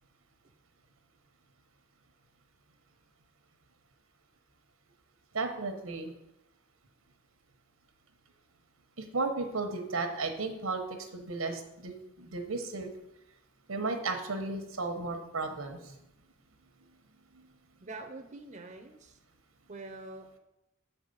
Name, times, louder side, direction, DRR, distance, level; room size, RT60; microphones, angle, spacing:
voice 1, 5.3-6.1 9.0-10.8 11.1-12.9 13.7-16.0, right 3 dB, 90° right, 5 dB, 1.0 m, -34 dB
voice 2, 17.8-19.2 19.7-20.4, right 2 dB, 35° right, 4 dB, 0.6 m, -45 dB
7.1 x 4.7 x 5.4 m, 0.89 s
head